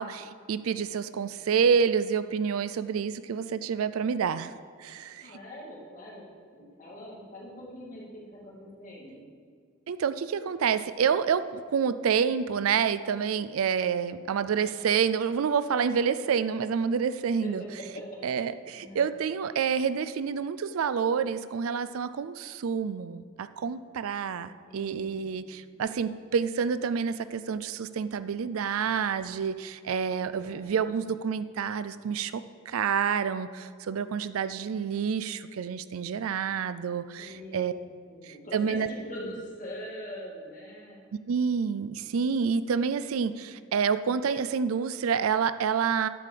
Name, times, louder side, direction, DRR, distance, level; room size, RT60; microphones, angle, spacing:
voice 1, 0.0-4.5 4.8-5.2 9.9-17.6 18.2-18.5 18.8-37.7 38.2-38.9 41.3-46.1, right 6 dB, 90° right, 13 dB, 0.4 m, -28 dB
voice 2, 5.2-6.3 6.5-9.2 17.4-17.5 17.9-18.0 18.7-19.1 24.7-25.4 30.4-31.1 37.2-41.0, equal, 40° left, -5 dB, 2.5 m, -43 dB
10.5 x 5.0 x 7.5 m, 2.1 s
head